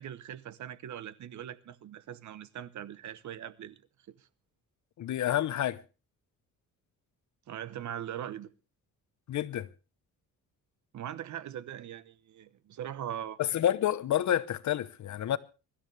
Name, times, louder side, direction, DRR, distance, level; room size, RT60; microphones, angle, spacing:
voice 1, 0.0-3.8 4.1-4.3 7.5-8.5 10.9-13.4, right 10 dB, 60° right, 1.0 m, -41 dB
voice 2, 5.0-5.8 9.3-9.7 13.4-15.4, left 11 dB, 60° left, 1.0 m, -29 dB
23.0 x 13.0 x 3.3 m
cardioid pair, 130°, 32 cm